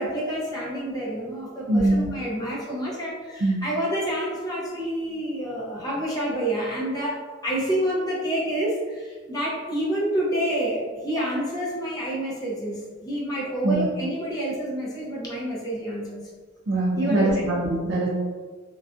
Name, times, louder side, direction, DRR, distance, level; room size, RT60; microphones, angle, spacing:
voice 1, 0.0-16.2 17.0-17.5, right 1 dB, 20° left, -6 dB, 0.6 m, -28 dB
voice 2, 1.7-2.2 3.4-3.6 13.6-13.9 16.7-18.1, right 2 dB, 60° right, -7 dB, 0.4 m, -22 dB
2.5 x 2.2 x 2.4 m, 1.5 s
head